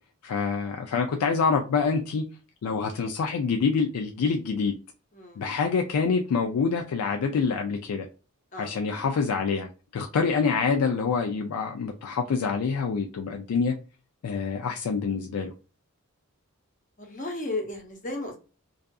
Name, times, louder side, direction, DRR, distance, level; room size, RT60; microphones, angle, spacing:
voice 1, 0.2-2.2 2.6-4.7 5.4-8.1 8.6-9.7 9.9-13.7 14.2-15.5, left 5 dB, 85° left, 0.4 m, -26 dB
voice 2, 5.1-5.5 8.5-8.8 17.0-18.4, left 2 dB, 35° left, 0.7 m, -35 dB
2.6 x 2.4 x 2.3 m
head